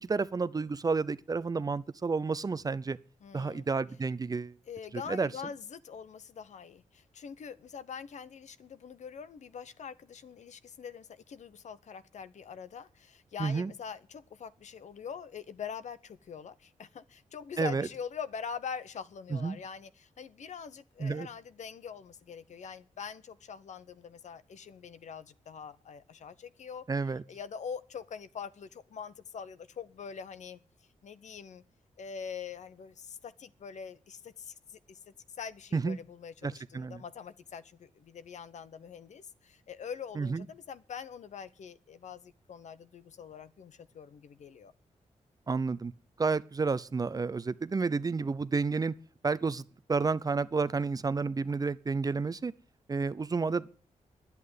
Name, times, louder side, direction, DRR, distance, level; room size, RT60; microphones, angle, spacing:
voice 1, 0.0-3.0 3.3-4.5 5.1-5.3 13.4-13.7 17.6-17.9 19.3-19.6 21.0-21.3 26.9-27.2 35.7-36.0 36.4-37.0 40.2-40.4 45.5-45.9 46.2-48.9 49.2-49.6 49.9-52.5 52.9-53.7, right 4 dB, 30° right, 0.5 m, -30 dB
voice 2, 3.2-3.7 4.7-30.6 31.0-31.6 32.0-44.7, left 7 dB, 65° left, 0.8 m, -44 dB
11.0 x 8.4 x 9.4 m
wide cardioid pair, 110°, 13 cm